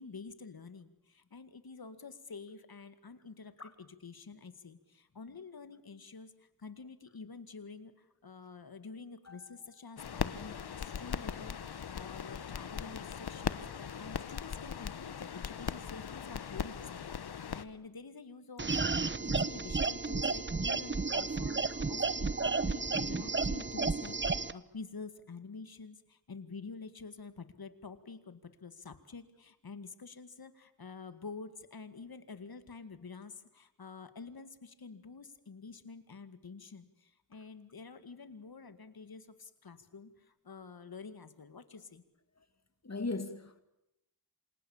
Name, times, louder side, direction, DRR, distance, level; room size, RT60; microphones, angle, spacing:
voice 1, 0.0-42.0, left 4 dB, 70° left, 2.2 m, -48 dB
sound 1, 10.0-17.7, left 7 dB, 85° left, 1.1 m, -39 dB
sound 2, 18.6-24.5, right 4 dB, 30° right, 1.1 m, -32 dB
voice 2, 42.8-43.6, left 3 dB, 45° left, 2.5 m, -38 dB
28.0 x 26.5 x 7.4 m
cardioid pair, 55°, 38 cm